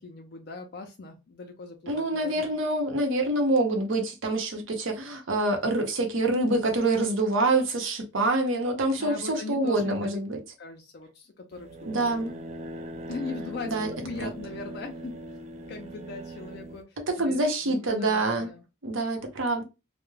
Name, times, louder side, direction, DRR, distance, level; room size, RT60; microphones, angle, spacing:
voice 1, 0.0-2.6 9.0-10.2 10.6-12.4 13.1-15.2 15.7-18.6, left 4 dB, 50° left, 0.4 m, -40 dB
voice 2, 1.9-10.4 11.9-12.3 13.6-13.9 14.2-14.3 17.1-18.5 18.8-19.6, right 2 dB, 75° right, 0.7 m, -26 dB
sound 1, 11.5-16.8, right 1 dB, 35° right, 0.3 m, -40 dB
2.2 x 2.0 x 3.1 m
head